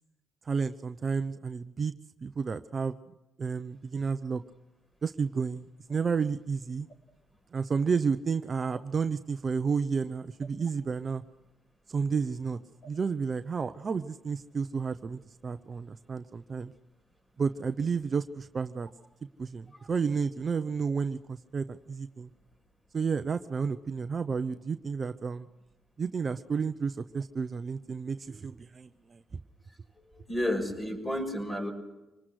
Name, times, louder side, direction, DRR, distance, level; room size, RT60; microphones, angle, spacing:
voice 1, 0.4-1.9 2.2-3.0 3.4-4.4 5.0-6.9 7.5-11.2 11.9-12.6 12.9-16.7 17.4-18.9 19.4-22.3 22.9-25.5 26.0-29.2, right 5 dB, 40° right, 10 dB, 0.8 m, -31 dB
voice 2, 30.0-31.7, left 1 dB, 15° left, 3 dB, 6.5 m, -32 dB
26.0 x 20.0 x 6.4 m, 1.0 s
cardioid pair, 90°, 0 cm